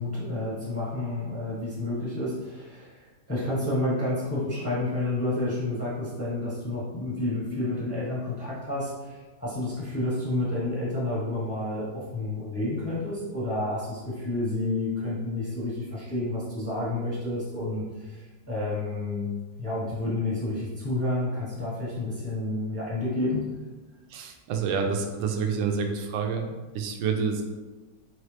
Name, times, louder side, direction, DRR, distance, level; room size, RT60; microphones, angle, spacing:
voice 1, 0.0-19.3 19.6-23.4, left 2 dB, 10° left, -8 dB, 0.7 m, -30 dB
voice 2, 24.1-27.4, right 5 dB, 80° right, 4 dB, 1.3 m, -28 dB
4.0 x 3.0 x 3.2 m, 1.3 s
omnidirectional pair, 2.0 m